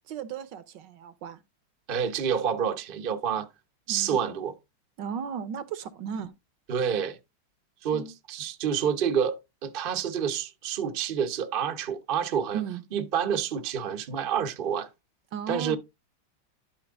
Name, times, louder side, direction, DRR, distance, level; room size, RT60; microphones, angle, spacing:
voice 1, 0.1-1.4 3.9-4.2 5.0-6.3 7.9-8.1 12.5-12.8 15.3-15.8, right 7 dB, 70° right, 1.3 m, -35 dB
voice 2, 1.9-3.5 3.9-4.5 6.7-7.2 7.8-12.6 12.9-14.9 15.5-15.8, right 8 dB, 50° right, 0.6 m, -28 dB
12.0 x 4.7 x 3.5 m
omnidirectional pair, 2.2 m